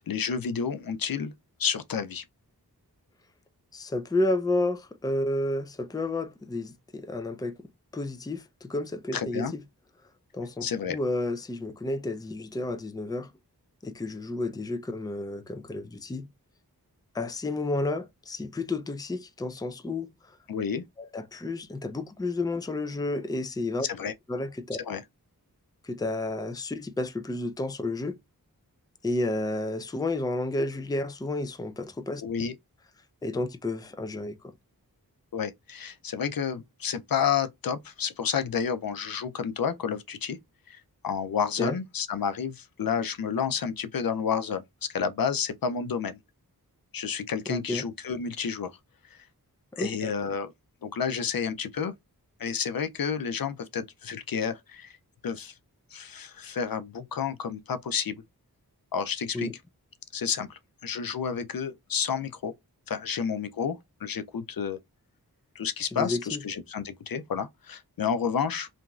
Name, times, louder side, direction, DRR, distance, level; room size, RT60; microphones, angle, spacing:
voice 1, 0.1-1.3 1.6-2.2 9.1-9.5 10.6-11.0 20.5-20.8 23.8-24.1 24.7-25.0 32.2-32.5 35.3-40.4 40.7-46.2 46.9-48.7 49.1-49.2 49.8-50.5 50.8-51.9 52.4-54.9 55.2-55.5 55.9-58.2 58.9-59.5 60.1-62.5 62.9-64.8 65.6-68.7, left 7 dB, 65° left, 0.5 m, -30 dB
voice 2, 3.7-7.5 7.9-9.4 10.3-13.3 13.8-16.3 17.1-20.1 21.1-23.9 24.3-24.8 25.8-28.2 29.0-32.2 33.2-34.4 41.6-41.8 47.5-47.8 49.7-50.1 59.3-59.5 65.9-66.4, left 2 dB, 10° left, 0.4 m, -31 dB
2.9 x 2.6 x 2.3 m
wide cardioid pair, 45°, 38 cm